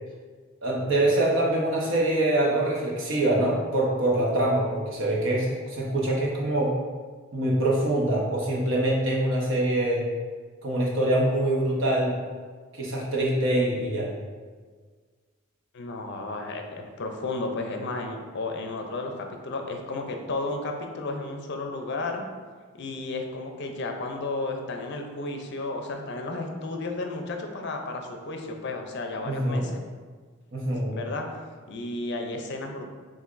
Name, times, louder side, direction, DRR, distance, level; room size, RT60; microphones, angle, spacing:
voice 1, 0.6-6.7 7.3-10.1 10.6-12.2 12.7-14.1 29.2-29.6 30.5-31.0, right 1 dB, 65° right, -3 dB, 1.0 m, -24 dB
voice 2, 15.7-22.3 22.8-29.8 30.9-31.3 31.7-32.8, left 2 dB, 55° left, 3 dB, 0.5 m, -33 dB
6.8 x 2.5 x 2.5 m, 1.5 s
head